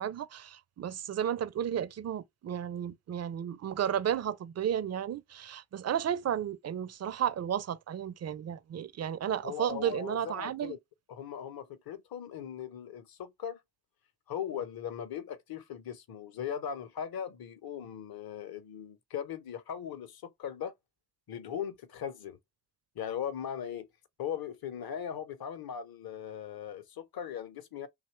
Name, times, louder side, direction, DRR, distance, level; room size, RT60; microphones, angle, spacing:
voice 1, 0.0-10.8, right 9 dB, 35° right, 0.4 m, -33 dB
voice 2, 9.4-10.8 11.1-13.6 14.3-20.7 21.3-22.4 22.9-23.9 24.2-27.9, left 8 dB, 50° left, 0.8 m, -39 dB
2.8 x 2.2 x 3.1 m
hypercardioid pair, 40°, 48 cm